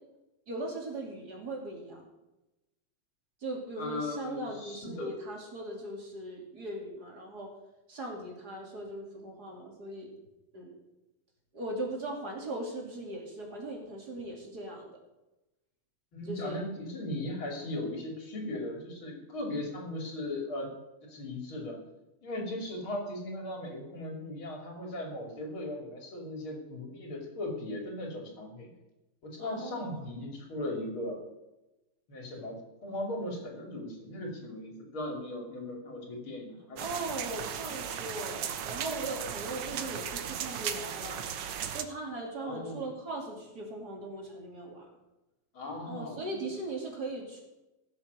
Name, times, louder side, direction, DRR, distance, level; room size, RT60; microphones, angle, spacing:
voice 1, 0.5-2.1 3.4-7.5 7.9-10.1 10.5-10.8 11.5-15.0 16.3-16.6 29.4-30.1 36.8-41.2 41.7-44.9 45.9-47.4, right 1 dB, 45° right, -1 dB, 3.4 m, -39 dB
voice 2, 3.8-5.1 16.1-20.7 21.0-21.8 22.2-28.7 29.2-31.2 32.1-36.8 42.4-42.9 45.5-46.4, left 1 dB, 70° left, 1 dB, 3.5 m, -38 dB
sound 1, 36.8-41.8, right 8 dB, 65° right, 1.4 m, -36 dB
16.0 x 7.4 x 6.7 m, 1.0 s
omnidirectional pair, 2.3 m